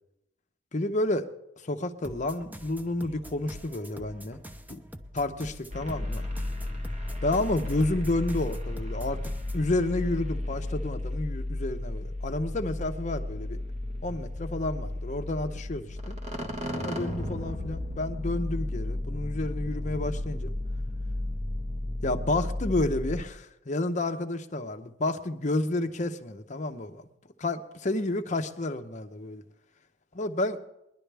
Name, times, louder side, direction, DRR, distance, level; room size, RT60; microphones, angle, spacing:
voice 1, 0.7-1.3 1.6-4.4 4.7-4.8 5.1-6.3 7.2-13.6 14.0-16.2 16.7-20.5 22.0-27.0 27.4-29.4 30.2-30.6, left 2 dB, 40° left, 6 dB, 0.9 m, -30 dB
sound 1, 2.0-9.7, equal, 10° right, 0.7 m, -45 dB
sound 2, 5.7-23.2, left 1 dB, 40° right, 1.4 m, -33 dB
21.5 x 11.0 x 3.4 m, 0.85 s
head